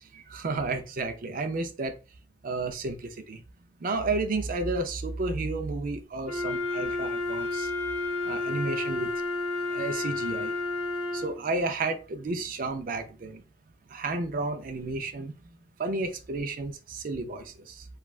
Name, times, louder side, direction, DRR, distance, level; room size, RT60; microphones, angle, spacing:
voice 1, 0.1-1.9 2.4-3.4 3.8-7.7 8.3-9.1 9.7-10.5 11.1-13.4 13.9-15.3 15.8-17.9, right 3 dB, 50° right, 0.4 m, -32 dB
Wind instrument woodwind instrument, 6.2-11.4, left 3 dB, 60° left, 1.2 m, -31 dB
3.1 x 2.3 x 2.3 m
head